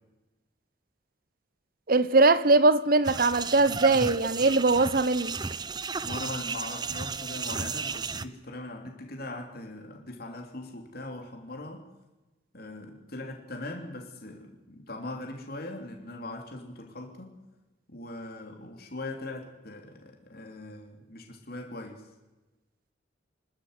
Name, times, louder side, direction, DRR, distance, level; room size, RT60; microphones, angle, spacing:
voice 1, 1.9-5.4, right 3 dB, 50° right, 0.9 m, -21 dB
sound 1, 3.0-8.3, right 5 dB, 20° right, 0.6 m, -34 dB
voice 2, 6.0-11.8 12.5-17.4 17.9-22.0, left 2 dB, 50° left, 3.2 m, -40 dB
26.5 x 13.0 x 8.2 m
head